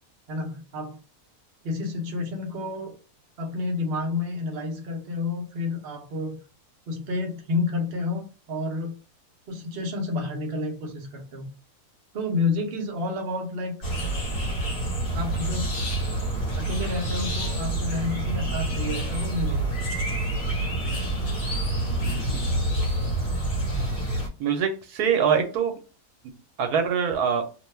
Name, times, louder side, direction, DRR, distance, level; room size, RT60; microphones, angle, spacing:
voice 1, 0.3-1.0 1.6-2.9 3.4-6.4 6.9-8.9 9.5-11.5 12.1-13.8 15.1-15.8 16.5-19.9, left 3 dB, 50° right, 0.7 m, -30 dB
sound 1, 13.8-24.3, right 1 dB, 50° left, 1.2 m, -27 dB
voice 2, 24.4-25.7 26.6-27.4, right 7 dB, 75° right, 1.1 m, -23 dB
2.8 x 2.2 x 3.1 m
omnidirectional pair, 1.7 m